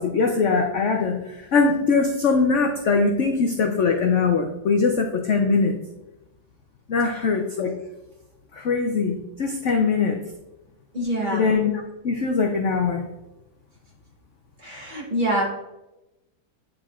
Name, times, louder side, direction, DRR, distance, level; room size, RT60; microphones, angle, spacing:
voice 1, 0.0-5.8 6.9-7.8 8.5-10.2 11.3-11.7 12.0-13.1, left 4 dB, 65° left, 2 dB, 0.8 m, -22 dB
voice 2, 10.9-11.5 14.6-15.4, right 1 dB, 30° right, -3 dB, 1.5 m, -25 dB
8.7 x 5.0 x 2.4 m, 0.95 s
omnidirectional pair, 1.9 m